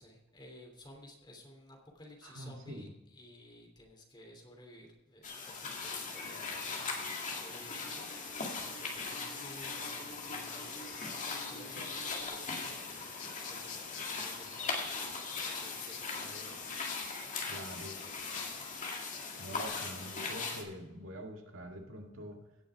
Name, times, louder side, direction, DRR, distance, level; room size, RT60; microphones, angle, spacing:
voice 1, 0.0-17.3 17.6-18.7, left 1 dB, 25° left, 1 dB, 3.0 m, -55 dB
voice 2, 2.2-2.9 17.5-18.0 19.4-22.4, equal, 75° right, 2 dB, 2.0 m, -45 dB
sound 1, 5.2-20.6, left 4 dB, 40° left, 2.2 m, -39 dB
sound 2, 13.1-19.6, left 8 dB, 65° left, 1.3 m, -53 dB
17.5 x 6.4 x 4.7 m, 1.0 s
head